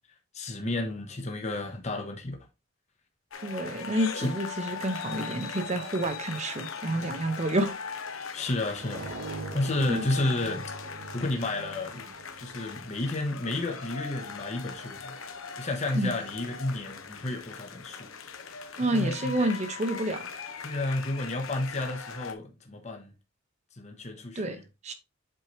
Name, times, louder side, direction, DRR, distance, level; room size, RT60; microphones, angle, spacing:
voice 1, 0.3-2.4 4.1-4.3 8.3-9.1 9.5-10.6 11.1-12.1 12.4-15.1 15.6-18.1 18.9-19.5 20.6-23.1 23.8-24.6, left 2 dB, 30° left, 0.9 m, -31 dB
sound 1, 3.3-22.3, left 5 dB, 75° left, 1.0 m, -40 dB
voice 2, 3.4-7.8 9.9-10.1 15.9-16.1 18.8-20.2 24.4-24.9, right 1 dB, 30° right, 0.8 m, -29 dB
sound 2, 8.7-13.4, right 3 dB, 65° right, 1.8 m, -41 dB
7.8 x 4.5 x 3.1 m
head